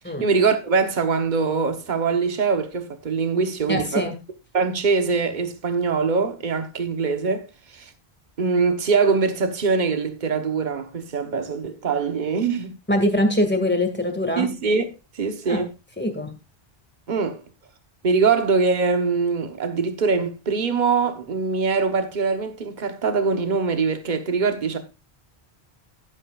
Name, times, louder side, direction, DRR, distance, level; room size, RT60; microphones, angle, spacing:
voice 1, 0.2-4.0 4.5-7.5 7.7-7.9 8.4-12.8 14.4-15.7 17.1-17.4 18.0-24.8, right 5 dB, 45° right, 1.2 m, -23 dB
voice 2, 3.7-4.1 12.9-14.5 15.4-15.6 16.0-16.3, left 1 dB, 10° left, 2.0 m, -22 dB
11.5 x 10.5 x 2.4 m
omnidirectional pair, 1.1 m